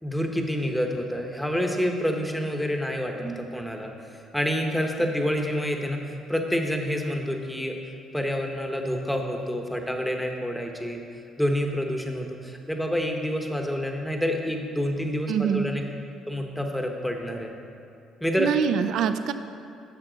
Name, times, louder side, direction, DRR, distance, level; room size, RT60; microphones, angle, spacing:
voice 1, 0.0-3.9 4.3-7.8 8.1-11.0 11.4-15.8 16.3-17.5 18.2-18.5, equal, 5° left, 2 dB, 1.0 m, -28 dB
voice 2, 15.3-15.7 18.4-19.3, right 7 dB, 70° right, 10 dB, 0.5 m, -24 dB
11.0 x 7.1 x 3.9 m, 2.6 s
cardioid pair, 115°, 0 cm